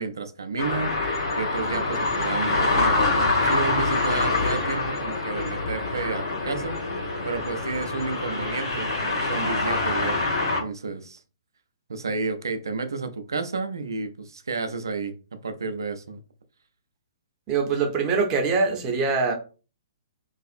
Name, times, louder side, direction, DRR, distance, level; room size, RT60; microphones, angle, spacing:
voice 1, 0.0-11.2 11.9-16.2, right 4 dB, 65° right, 0.4 m, -31 dB
sound 1, 0.6-10.6, left 3 dB, 65° left, 1.3 m, -25 dB
voice 2, 17.5-19.3, right 4 dB, 25° right, 0.6 m, -23 dB
2.6 x 2.3 x 2.4 m
figure-of-eight pair, 120°, 2 cm